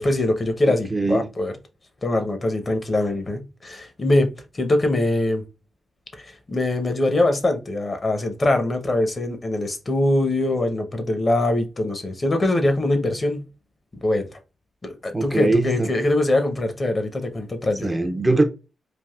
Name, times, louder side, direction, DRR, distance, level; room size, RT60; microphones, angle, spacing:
voice 1, 0.0-1.5 2.0-5.4 6.1-13.5 14.0-14.4 14.8-17.9, left 1 dB, 30° left, 0.7 m, -23 dB
voice 2, 0.7-1.3 15.1-15.9 17.8-18.4, right 2 dB, 20° right, 0.5 m, -21 dB
3.3 x 2.5 x 2.3 m
cardioid pair, 95°, 0 cm